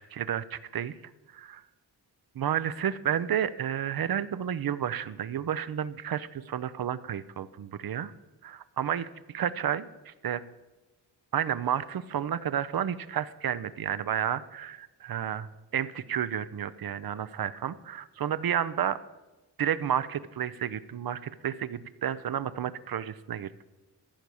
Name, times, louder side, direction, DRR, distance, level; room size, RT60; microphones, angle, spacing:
voice 1, 0.1-1.0 1.3-1.6 2.3-8.1 8.4-9.1 9.3-10.4 11.3-19.0 19.6-23.6, right 9 dB, 60° right, 15 dB, 0.6 m, -31 dB
14.0 x 4.7 x 7.0 m, 1.1 s
cardioid pair, 55°, 41 cm